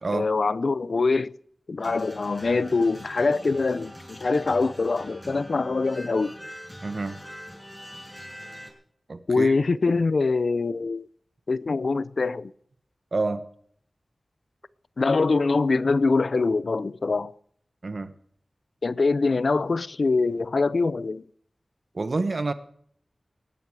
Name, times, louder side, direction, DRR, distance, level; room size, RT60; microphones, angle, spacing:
voice 1, 0.1-1.3 1.7-6.3 9.3-11.1 11.5-12.5 15.0-17.3 18.8-21.2, left 3 dB, 75° left, 0.6 m, -24 dB
sound 1, 1.8-8.7, equal, 5° left, 5.6 m, -43 dB
voice 2, 6.8-7.2 9.1-9.5 13.1-13.4 17.8-18.1 21.9-22.5, right 3 dB, 65° right, 1.1 m, -28 dB
19.5 x 14.5 x 4.8 m
wide cardioid pair, 65°, 0 cm